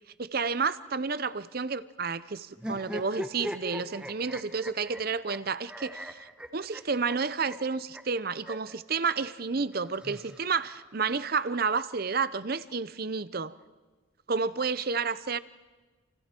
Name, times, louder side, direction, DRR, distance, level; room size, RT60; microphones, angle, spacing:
voice 1, 0.2-13.6 14.3-15.4, right 5 dB, 45° right, 0.7 m, -30 dB
sound 1, 2.6-8.8 9.7-10.9, equal, 5° right, 1.1 m, -40 dB
29.0 x 29.0 x 4.5 m
head